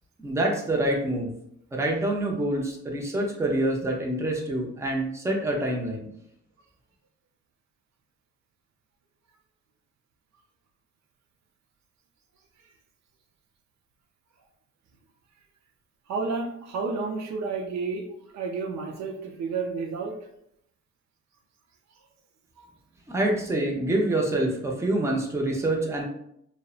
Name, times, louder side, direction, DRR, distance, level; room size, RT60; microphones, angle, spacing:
voice 1, 0.2-1.3 1.7-6.1 23.1-26.0, right 1 dB, 10° right, -1 dB, 0.5 m, -26 dB
voice 2, 16.1-18.1 18.3-20.2 22.6-22.7, right 4 dB, 65° right, 3 dB, 0.5 m, -31 dB
2.5 x 2.0 x 2.4 m, 0.74 s
cardioid pair, 90°, 30 cm